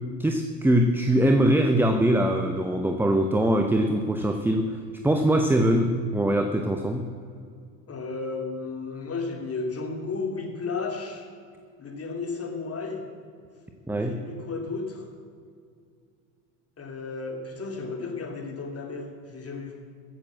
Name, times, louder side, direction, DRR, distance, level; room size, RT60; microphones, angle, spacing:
voice 1, 0.2-4.8 5.0-7.1 13.9-14.2, right 1 dB, 5° right, 5 dB, 0.9 m, -22 dB
voice 2, 7.9-11.3 11.8-13.0 13.9-15.1 16.8-19.8, left 4 dB, 30° left, 3 dB, 2.9 m, -33 dB
15.0 x 7.6 x 7.6 m, 2.2 s
hypercardioid pair, 85°, 49 cm